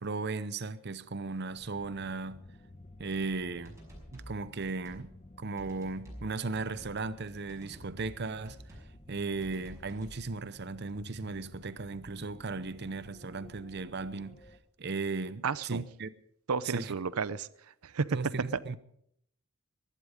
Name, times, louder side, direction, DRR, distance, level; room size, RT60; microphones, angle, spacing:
voice 1, 0.0-2.4 3.0-3.8 4.1-8.6 9.1-14.4 14.8-16.1 16.6-16.9 18.1-18.8, right 3 dB, 50° right, 0.7 m, -36 dB
sound 1, 1.5-14.6, left 1 dB, 30° left, 1.2 m, -53 dB
sound 2, 3.6-4.3 4.6-5.1 5.6-6.3 6.5-7.0 7.5-8.2 8.4-8.9 9.4-10.2, equal, 15° right, 5.6 m, -50 dB
voice 2, 15.4-15.8 16.5-17.5 17.8-18.1, right 5 dB, 85° right, 0.6 m, -32 dB
20.0 x 11.5 x 5.2 m
head